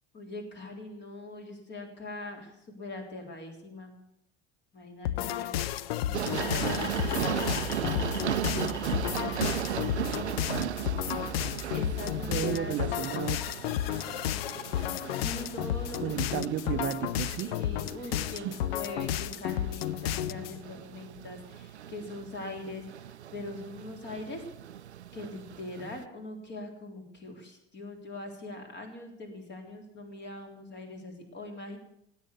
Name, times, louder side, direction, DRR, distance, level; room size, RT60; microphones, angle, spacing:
voice 1, 0.1-3.9 4.7-5.7 6.0-10.3 11.7-12.8 15.2-16.4 17.4-24.4 25.1-31.8, left 2 dB, 35° left, 3 dB, 3.7 m, -42 dB
sound 1, 5.0-20.6, left 12 dB, 65° left, 0.6 m, -32 dB
sound 2, 6.1-26.0, right 10 dB, 80° right, 0.5 m, -37 dB
sound 3, 6.3-12.2, right 2 dB, 85° left, 3.2 m, -40 dB
voice 2, 12.3-13.4 16.0-17.5 18.3-18.5, right 12 dB, 35° right, 10 dB, 0.7 m, -33 dB
16.5 x 9.0 x 8.2 m, 0.76 s
figure-of-eight pair, 70°, 33 cm